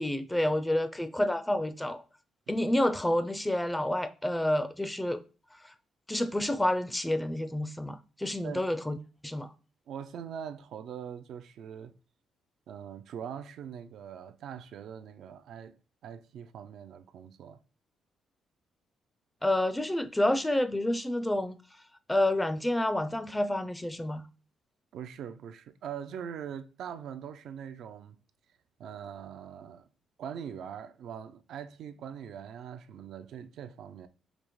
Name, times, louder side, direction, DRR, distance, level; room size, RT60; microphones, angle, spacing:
voice 1, 0.0-2.0 2.5-5.2 6.1-9.0 9.2-9.5 19.4-21.6 22.1-24.2, left 1 dB, 10° left, 0.4 m, -29 dB
voice 2, 9.9-11.9 12.7-15.8 16.0-17.6 24.9-28.2 28.8-29.9 30.2-34.1, right 8 dB, 75° right, 0.3 m, -42 dB
5.0 x 2.1 x 3.0 m
cardioid pair, 90°, 0 cm